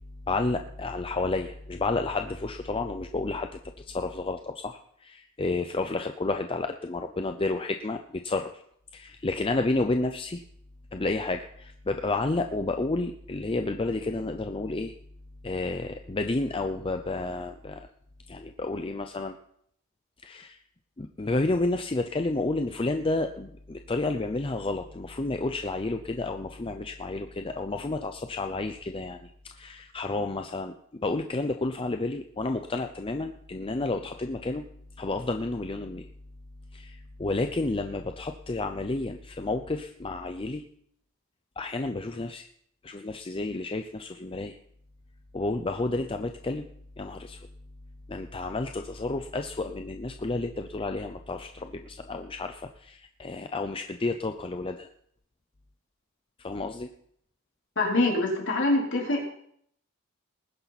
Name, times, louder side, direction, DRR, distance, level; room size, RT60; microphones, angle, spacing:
voice 1, 0.3-8.6 8.9-10.4 10.9-14.9 15.4-17.9 18.3-19.4 20.2-20.6 21.0-34.7 35.0-36.1 36.7-40.6 41.6-42.5 42.8-44.6 45.3-46.7 47.0-47.5 48.1-54.9 56.4-56.9, left 2 dB, 25° left, 6 dB, 0.6 m, -31 dB
voice 2, 57.8-59.3, left 2 dB, 55° left, -2 dB, 4.0 m, -25 dB
19.5 x 10.0 x 4.1 m, 0.68 s
head